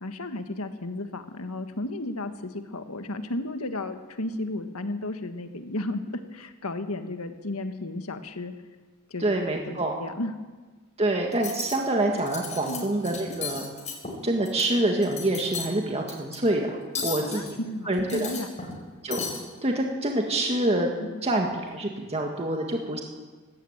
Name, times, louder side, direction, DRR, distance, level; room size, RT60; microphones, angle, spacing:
voice 1, 0.0-8.5 9.1-9.2 10.0-10.3 12.7-12.8 17.0-18.5 21.0-21.2, left 2 dB, 90° left, 8 dB, 1.7 m, -33 dB
voice 2, 9.2-9.9 11.0-13.7 14.2-17.5 17.9-18.3 19.0-19.2 19.6-20.9 21.2-23.0, right 1 dB, 30° right, 1 dB, 2.0 m, -26 dB
Cutlery silverware, 11.3-11.7 12.2-12.8 13.0-14.6 15.0-15.7 16.1-16.4 16.9-17.5 17.9-18.8 19.1-19.4, left 5 dB, 35° left, 5.2 m, -35 dB
19.5 x 15.5 x 8.8 m, 1.4 s
head